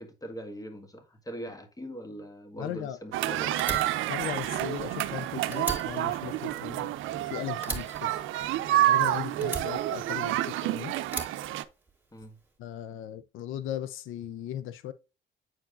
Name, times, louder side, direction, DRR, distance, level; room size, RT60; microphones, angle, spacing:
voice 1, 0.0-3.5 12.1-12.4, equal, 20° left, 1.6 m, -41 dB
voice 2, 2.6-3.0 4.1-6.9 7.3-8.2 8.9-10.9 12.6-14.9, left 11 dB, 85° left, 0.5 m, -37 dB
sound 1, 3.1-11.6, right 14 dB, 90° right, 0.5 m, -29 dB
Fire, 3.6-5.2 5.5-7.2 7.6-9.0 9.4-10.6 11.1-12.2, right 3 dB, 10° right, 2.0 m, -38 dB
8.7 x 4.6 x 2.5 m
cardioid pair, 90°, 20 cm